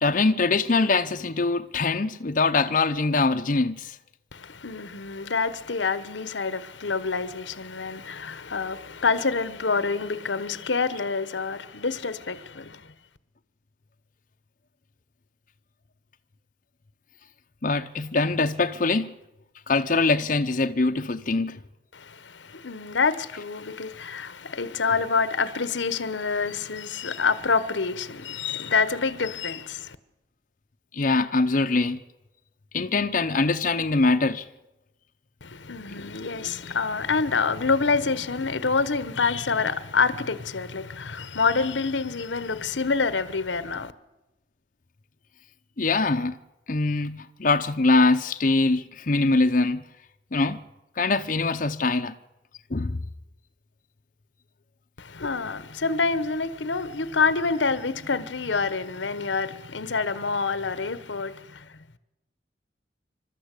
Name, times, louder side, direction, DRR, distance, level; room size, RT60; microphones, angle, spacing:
voice 1, 0.0-4.0 17.6-19.1 19.7-21.6 30.9-32.0 32.7-34.4 45.8-46.4 46.7-49.8 50.3-50.6 51.0-52.1 52.7-53.0, left 3 dB, 45° left, 0.8 m, -23 dB
voice 2, 4.3-12.8 21.9-30.0 35.4-43.9 55.0-61.6, left 4 dB, 90° left, 1.1 m, -27 dB
27.0 x 13.0 x 8.3 m
head